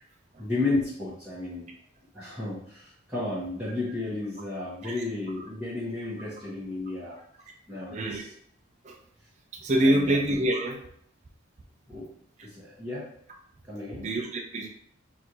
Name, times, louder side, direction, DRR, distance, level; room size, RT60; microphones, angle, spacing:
voice 1, 0.4-1.7 2.1-7.2 7.7-8.3 9.8-10.2 11.9-12.1 12.4-13.1 13.7-14.1, left 2 dB, 5° right, -13 dB, 1.2 m, -33 dB
voice 2, 7.9-8.2 8.8-9.0 9.5-10.8 14.0-14.7, right 1 dB, 35° right, 1 dB, 0.4 m, -25 dB
6.0 x 2.6 x 2.9 m, 0.68 s
head